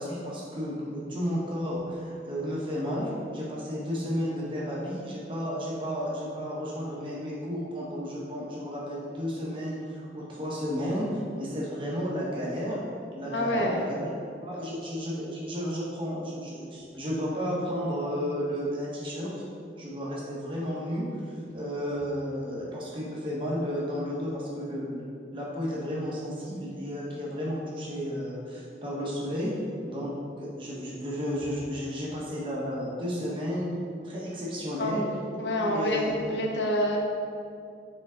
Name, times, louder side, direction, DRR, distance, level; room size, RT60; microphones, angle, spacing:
voice 1, 0.0-12.8 13.1-19.3 19.8-21.0 21.5-25.0 25.3-29.5 29.8-30.1 30.4-33.7 34.0-35.0 35.5-36.1, equal, 30° right, -5 dB, 1.3 m, -32 dB
voice 2, 13.3-13.8 34.8-35.1 35.4-37.0, equal, 80° left, 0 dB, 0.9 m, -27 dB
7.1 x 4.4 x 3.8 m, 2.4 s
head